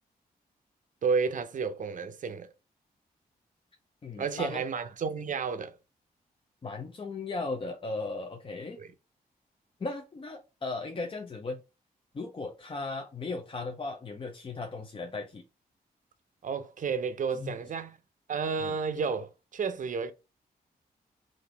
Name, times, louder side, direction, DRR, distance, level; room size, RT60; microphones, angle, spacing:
voice 1, 1.0-2.5 4.2-5.7 8.8-8.9 16.4-18.0 18.3-20.1, right 5 dB, 55° right, 0.6 m, -31 dB
voice 2, 4.0-4.6 6.6-8.8 9.8-11.6 12.1-15.4 17.3-17.6 18.6-18.8, left 3 dB, 35° left, 0.6 m, -37 dB
3.9 x 2.5 x 3.2 m
cardioid pair, 80°, 16 cm